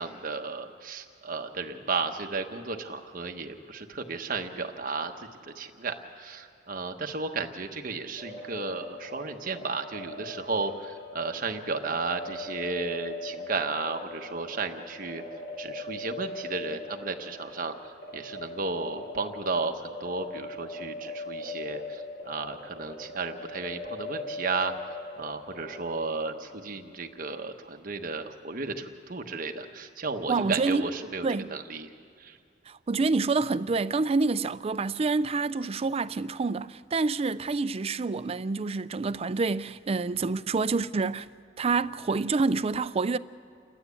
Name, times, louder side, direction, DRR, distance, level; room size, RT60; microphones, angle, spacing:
voice 1, 0.0-15.2 15.6-24.7 25.1-31.9 32.2-32.4, right 4 dB, 50° right, 1.2 m, -34 dB
sound 1, 8.2-26.6, left 2 dB, 65° left, 3.3 m, -40 dB
voice 2, 30.3-30.9 31.2-31.5 32.7-41.3 41.6-43.2, right 4 dB, 35° right, 0.4 m, -27 dB
29.0 x 12.5 x 8.4 m
head